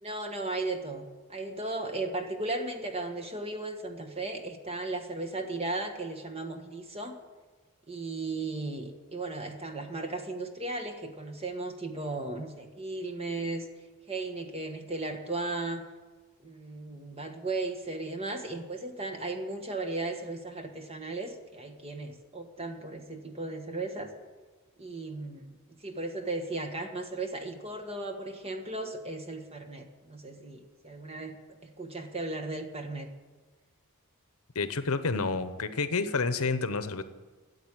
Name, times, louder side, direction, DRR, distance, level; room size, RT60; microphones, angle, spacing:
voice 1, 0.0-7.2 7.9-13.7 14.1-15.8 16.4-24.1 24.8-25.5 25.8-33.1, right 2 dB, 25° right, 5 dB, 1.5 m, -36 dB
voice 2, 34.5-37.0, left 4 dB, 75° left, 12 dB, 1.0 m, -29 dB
13.5 x 8.2 x 9.7 m, 1.3 s
head